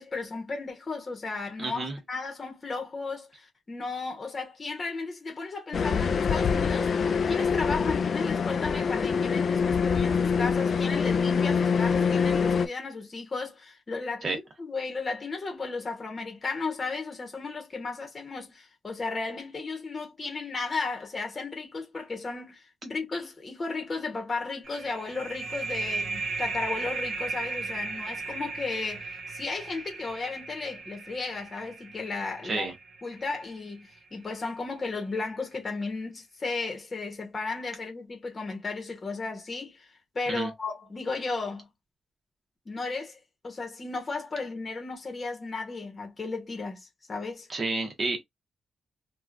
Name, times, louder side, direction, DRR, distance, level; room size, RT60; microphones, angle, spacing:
voice 1, 0.0-32.7 33.0-39.9 40.1-41.7 42.7-47.5, left 3 dB, 30° left, 1.0 m, -34 dB
voice 2, 1.6-2.0 14.2-14.4 32.4-32.7 40.3-40.5 47.5-48.2, right 3 dB, 35° right, 1.1 m, -30 dB
sound 1, 5.7-12.7, left 6 dB, 50° left, 0.3 m, -25 dB
sound 2, 24.6-33.9, right 3 dB, 75° right, 0.7 m, -36 dB
3.0 x 2.3 x 2.5 m
cardioid pair, 125°, 0 cm